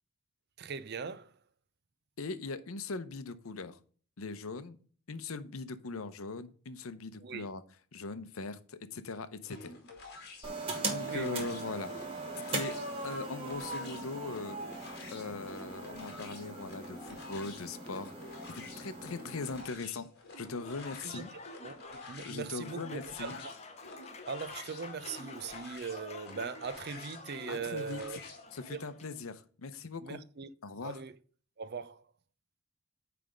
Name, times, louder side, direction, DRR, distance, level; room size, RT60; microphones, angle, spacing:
voice 1, 0.6-1.3 7.2-7.5 11.0-11.6 21.0-21.2 21.6-23.5 24.3-28.2 28.7-28.9 30.0-30.5 30.8-31.2 31.6-32.0, right 5 dB, 50° right, 0.5 m, -40 dB
voice 2, 2.2-3.8 4.2-4.8 5.1-7.6 7.9-9.8 10.9-11.9 12.4-12.8 13.0-14.6 15.1-20.1 20.4-21.3 22.2-23.3 27.5-28.0 28.5-30.2 30.6-31.0, left 3 dB, 80° left, 0.7 m, -40 dB
sound 1, 9.4-28.4, left 2 dB, 50° left, 2.3 m, -50 dB
sound 2, 10.4-19.6, right 3 dB, 25° right, 1.8 m, -40 dB
Applause / Crowd, 20.4-29.2, left 4 dB, 30° left, 0.8 m, -49 dB
9.2 x 3.4 x 5.0 m
head